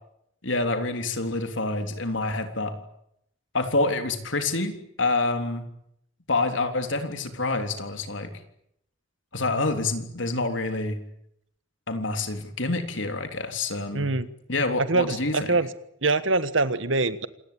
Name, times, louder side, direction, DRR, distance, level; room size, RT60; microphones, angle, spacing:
voice 1, 0.4-2.7 3.5-5.7 6.3-8.3 9.3-11.0 11.9-14.2 14.5-15.5, left 2 dB, 70° left, 6 dB, 3.6 m, -27 dB
voice 2, 13.9-14.3 14.8-15.7 16.0-17.3, right 3 dB, 70° right, 14 dB, 1.5 m, -24 dB
27.5 x 20.0 x 8.8 m, 0.74 s
head